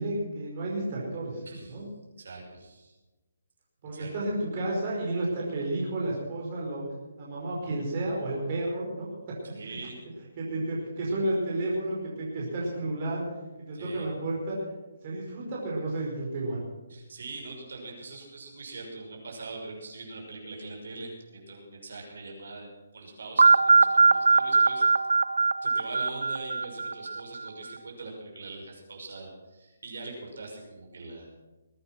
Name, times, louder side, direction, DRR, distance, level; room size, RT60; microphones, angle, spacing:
voice 1, 0.0-1.4 1.7-1.9 3.8-6.8 7.2-9.3 10.4-13.2 13.6-14.6 15.0-16.6, right 1 dB, 35° right, -4 dB, 4.8 m, -31 dB
voice 2, 1.4-1.8 2.2-3.0 3.9-4.1 9.5-10.0 13.7-14.1 16.9-22.7 22.9-25.1 25.6-31.3, right 3 dB, 70° right, 0 dB, 6.0 m, -42 dB
sound 1, 23.4-27.4, right 4 dB, 85° right, 0.7 m, -21 dB
21.0 x 9.6 x 6.1 m, 1.2 s
hypercardioid pair, 165°, 0 cm